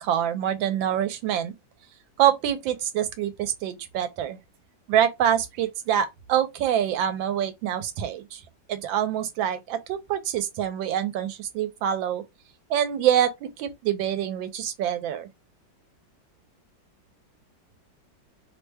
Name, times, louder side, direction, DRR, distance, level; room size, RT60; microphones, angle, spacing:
voice 1, 0.0-1.5 2.2-4.4 4.9-8.4 8.7-12.2 12.7-15.3, right 10 dB, 85° right, 1.4 m, -25 dB
3.2 x 2.1 x 3.3 m
omnidirectional pair, 2.0 m